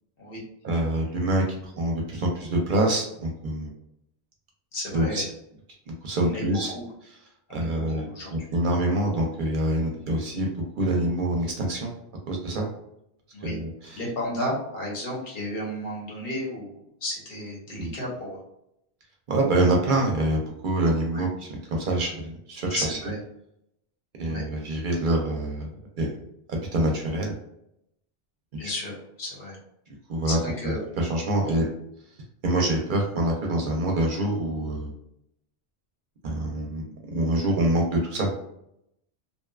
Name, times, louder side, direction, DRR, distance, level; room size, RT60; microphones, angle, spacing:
voice 1, 0.6-3.7 4.9-5.2 6.0-6.7 7.1-7.2 7.5-8.0 8.3-11.9 12.3-12.7 13.4-14.0 17.8-17.9 19.3-23.0 24.2-25.7 26.0-26.1 26.5-27.4 28.5-28.7 30.1-30.4 30.6-31.7 32.4-34.9 36.2-36.9 37.1-38.3, right 1 dB, 60° right, 0 dB, 0.6 m, -26 dB
voice 2, 4.7-5.2 6.2-6.5 6.7-6.8 7.5-8.3 13.3-13.6 13.9-18.4 21.1-21.2 22.7-23.2 24.2-24.4 28.6-29.6 30.2-30.8 31.5-31.6 32.6-32.7, left 1 dB, 65° left, -4 dB, 1.1 m, -33 dB
2.6 x 2.2 x 2.3 m, 0.79 s
omnidirectional pair, 1.1 m